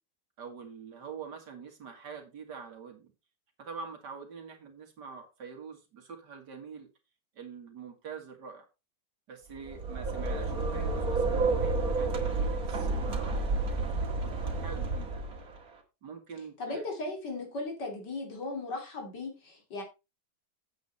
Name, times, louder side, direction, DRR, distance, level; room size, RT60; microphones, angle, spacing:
voice 1, 0.4-3.1 3.6-6.9 7.4-8.7 9.3-15.2 16.0-16.8, right 5 dB, 70° right, 2.4 m, -45 dB
sound 1, 9.6-15.6, right 3 dB, 55° right, 2.2 m, -30 dB
voice 2, 16.6-19.8, left 2 dB, 75° left, 3.3 m, -37 dB
8.6 x 8.0 x 4.1 m
omnidirectional pair, 1.9 m